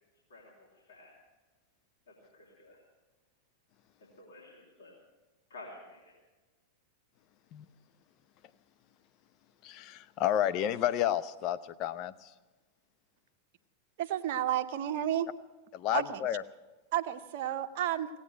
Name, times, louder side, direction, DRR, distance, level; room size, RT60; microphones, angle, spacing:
voice 1, 0.3-1.1 2.3-2.8 4.2-4.9 5.5-6.2, left 2 dB, 65° left, -5 dB, 3.7 m, -51 dB
voice 2, 9.6-12.3 15.7-16.4, left 11 dB, 40° left, 13 dB, 0.6 m, -31 dB
voice 3, 14.0-15.3 15.9-16.2 16.9-18.1, right 11 dB, 50° right, 8 dB, 0.7 m, -31 dB
18.0 x 8.8 x 9.1 m, 1.2 s
figure-of-eight pair, 90°, 0 cm